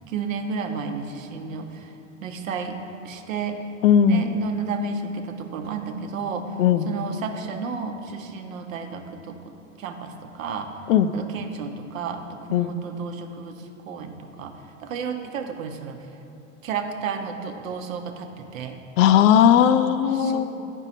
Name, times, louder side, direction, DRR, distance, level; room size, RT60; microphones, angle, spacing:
voice 1, 0.1-1.9 2.2-2.8 3.0-3.6 4.1-6.6 6.8-9.4 9.8-10.7 11.1-16.0 16.6-18.8 20.1-20.4, right 5 dB, 85° right, 6 dB, 0.8 m, -32 dB
voice 2, 3.8-4.3 6.6-6.9 10.9-11.1 12.5-12.7 19.0-20.4, left 9 dB, 75° left, 12 dB, 0.5 m, -17 dB
8.9 x 5.4 x 4.1 m, 2.8 s
hypercardioid pair, 105°, 39 cm